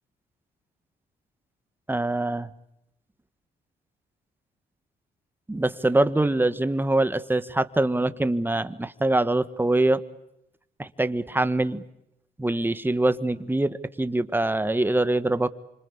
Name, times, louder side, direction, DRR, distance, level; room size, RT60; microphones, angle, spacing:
voice 1, 1.9-2.5 5.5-10.0 10.8-11.8 12.4-15.5, right 2 dB, 10° right, 13 dB, 1.6 m, -24 dB
27.0 x 26.0 x 8.5 m, 0.82 s
cardioid pair, 85°, 17 cm